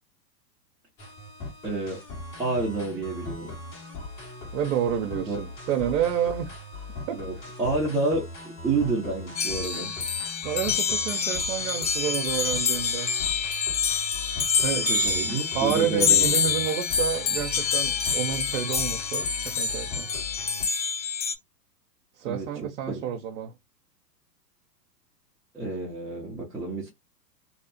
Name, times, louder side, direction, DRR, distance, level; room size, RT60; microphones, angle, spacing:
sound 1, 1.0-20.7, left 2 dB, 35° left, 1.5 m, -40 dB
voice 1, 1.6-2.0 2.4-3.5 5.2-5.4 7.1-9.9 14.7-16.4 22.2-22.5 22.9-23.0 25.5-26.9, right 2 dB, 5° right, 0.5 m, -29 dB
voice 2, 4.5-6.5 7.1-7.2 10.4-13.1 14.6-14.9 15.5-20.1 22.2-23.5, right 9 dB, 55° right, 0.7 m, -29 dB
sound 2, 9.4-21.4, left 6 dB, 85° left, 1.0 m, -26 dB
2.8 x 2.0 x 2.5 m
hypercardioid pair, 125°, 50 cm